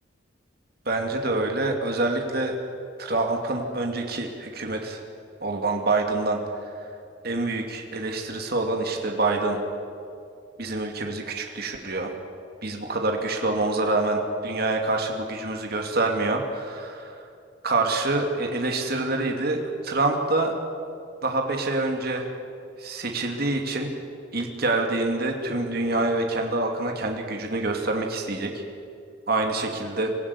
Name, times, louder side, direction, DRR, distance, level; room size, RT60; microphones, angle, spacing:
voice 1, 0.9-2.6 3.0-5.0 5.4-6.4 7.2-9.6 10.6-12.1 12.6-17.2 17.6-20.5 21.2-22.3 22.8-23.9 24.3-28.5 29.3-30.1, right 2 dB, 50° right, 2 dB, 2.5 m, -26 dB
25.0 x 16.0 x 9.8 m, 2.4 s
head